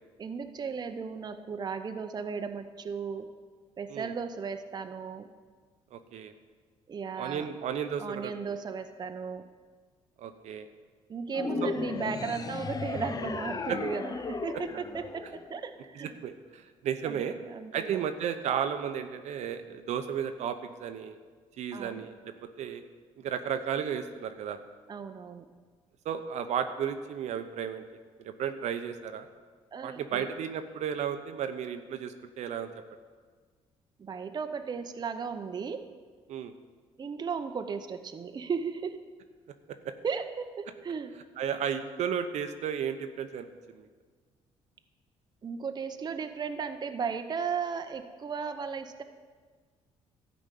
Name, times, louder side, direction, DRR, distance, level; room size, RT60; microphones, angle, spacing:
voice 1, 0.2-3.3 3.8-5.3 6.9-7.5 8.0-9.5 11.1-16.2 17.0-18.0 21.7-22.1 24.9-25.5 29.7-30.3 34.0-35.9 37.0-39.0 40.0-41.2 45.4-49.0, right 6 dB, 35° right, 7 dB, 0.7 m, -36 dB
voice 2, 5.9-6.3 7.2-8.3 10.2-10.7 11.6-11.7 13.7-13.8 14.5-14.6 15.9-17.4 17.7-21.2 21.6-22.8 23.2-24.6 26.0-27.8 28.2-29.3 29.8-32.7 36.3-36.5 39.7-39.9 41.4-43.5 43.7-43.9, right 8 dB, 70° right, 8 dB, 0.8 m, -33 dB
sound 1, 11.3-15.8, left 4 dB, 30° left, 0.5 m, -35 dB
12.5 x 5.2 x 8.4 m, 1.5 s
cardioid pair, 90°, 12 cm